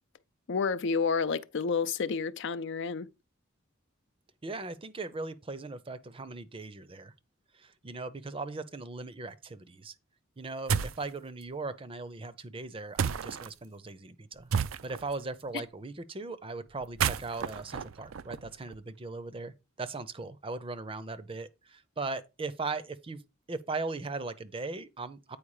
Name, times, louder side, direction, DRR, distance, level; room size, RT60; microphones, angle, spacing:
voice 1, 0.5-3.1, left 5 dB, 60° left, 0.5 m, -30 dB
voice 2, 4.4-7.1 7.5-9.9 10.4-14.5 14.8-23.2 23.5-25.4, right 3 dB, 25° right, 0.6 m, -39 dB
sound 1, 10.7-11.1 13.0-13.5 14.5-15.1 16.8-18.8, right 7 dB, 85° right, 0.5 m, -31 dB
8.7 x 4.6 x 4.8 m
head